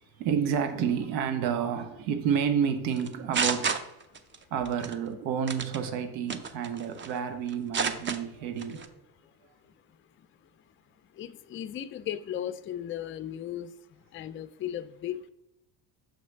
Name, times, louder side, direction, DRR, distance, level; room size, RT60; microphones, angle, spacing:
voice 1, 0.2-3.7 4.5-9.0, right 7 dB, 90° right, 8 dB, 1.0 m, -30 dB
sound 1, 3.0-4.4 4.7-4.9 5.5-5.8 6.3-7.2 7.5-8.2 8.6-8.9, right 5 dB, 25° right, 0.5 m, -30 dB
voice 2, 11.0-15.3, left 10 dB, 25° left, 13 dB, 0.4 m, -37 dB
6.5 x 3.1 x 5.7 m, 0.87 s
supercardioid pair, 85°, 50 cm